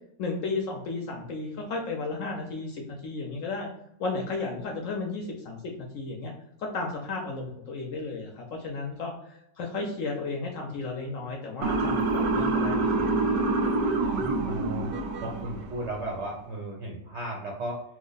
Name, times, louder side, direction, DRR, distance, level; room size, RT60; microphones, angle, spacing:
voice 1, 0.2-3.7 4.0-6.3 6.6-13.0, left 3 dB, 65° left, 0 dB, 0.8 m, -34 dB
Motor vehicle (road) / Siren, 11.6-15.8, right 3 dB, 85° right, 1.2 m, -26 dB
voice 2, 14.0-14.9 15.2-17.8, right 1 dB, 65° right, -1 dB, 0.7 m, -35 dB
3.1 x 2.1 x 3.8 m, 0.75 s
omnidirectional pair, 1.8 m